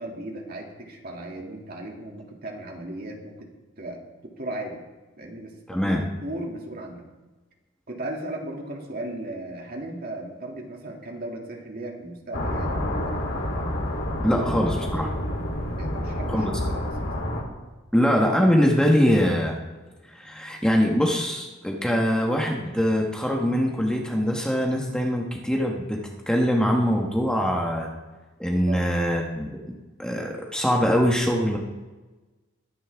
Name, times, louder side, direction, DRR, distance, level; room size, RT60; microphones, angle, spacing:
voice 1, 0.0-3.5 3.8-4.8 5.2-5.8 6.2-7.1 7.9-13.3 14.4-14.9 15.8-17.1 28.7-28.9, right 1 dB, 50° right, 0 dB, 2.5 m, -36 dB
voice 2, 5.7-6.1 14.2-15.1 16.3-16.5 17.9-19.6 20.1-26.0 26.3-27.9 28.4-29.6 30.0-31.6, equal, 5° left, 0 dB, 1.3 m, -23 dB
sound 1, 12.3-17.4, left 1 dB, 70° left, 3.2 m, -28 dB
21.5 x 10.5 x 3.6 m, 1.2 s
head